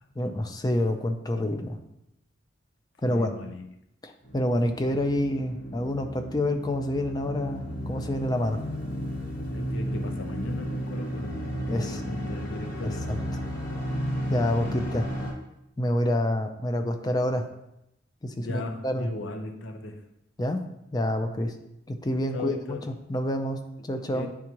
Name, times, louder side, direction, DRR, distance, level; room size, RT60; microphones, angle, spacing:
voice 1, 0.2-1.8 3.0-3.3 4.0-8.6 11.7-12.0 12.8-12.9 14.3-15.0 15.8-17.4 18.2-19.1 20.4-20.6 20.9-21.5 22.0-23.6 23.9-24.3, left 1 dB, 20° left, 6 dB, 0.5 m, -27 dB
voice 2, 3.1-3.7 9.5-13.1 14.6-14.7 18.4-20.0 22.3-22.8 24.1-24.3, left 2 dB, 80° left, 5 dB, 0.6 m, -37 dB
sound 1, 4.2-15.3, equal, 45° left, 1.2 m, -33 dB
8.8 x 3.6 x 3.0 m, 0.84 s
head